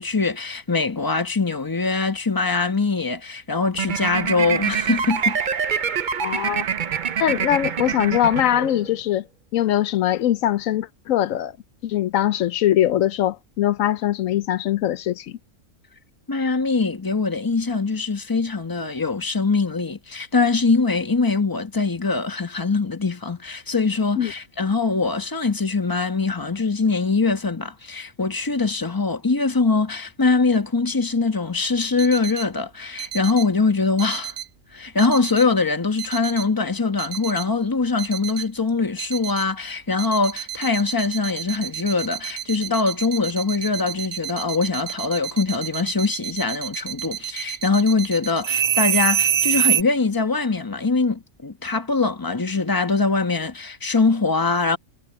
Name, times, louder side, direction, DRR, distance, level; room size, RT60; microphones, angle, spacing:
voice 1, 0.0-5.4 16.3-34.3 34.7-54.8, left 4 dB, 15° left, 1.2 m, -22 dB
sound 1, 3.8-9.0, right 7 dB, 45° right, 0.7 m, -25 dB
voice 2, 6.2-6.6 7.2-9.2 9.5-11.6 11.8-15.3 24.2-24.3, left 12 dB, 80° left, 1.0 m, -22 dB
sound 2, 32.0-32.4 33.0-33.4 34.0-34.4 35.0-35.4 36.0-36.4 37.0-37.4 38.0-38.4 39.0-39.4 40.0-49.8, right 10 dB, 85° right, 1.2 m, -26 dB
omnidirectional pair, 1.4 m